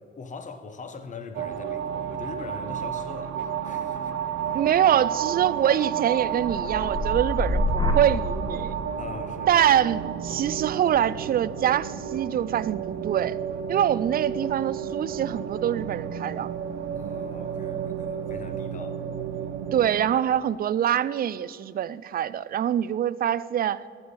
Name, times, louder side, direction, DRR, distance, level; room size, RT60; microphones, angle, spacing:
voice 1, 0.2-4.6 9.0-9.6 16.9-19.5, left 4 dB, 40° left, 1.0 m, -42 dB
sound 1, 1.3-19.9, right 8 dB, 90° right, 0.7 m, -32 dB
voice 2, 4.5-8.8 9.5-13.4 13.7-16.5 19.7-23.8, right 10 dB, 50° right, 0.4 m, -24 dB
sound 2, 6.1-14.2 14.6-15.1, left 1 dB, 20° left, 1.3 m, -32 dB
12.0 x 7.1 x 5.5 m
cardioid pair, 90°, 20 cm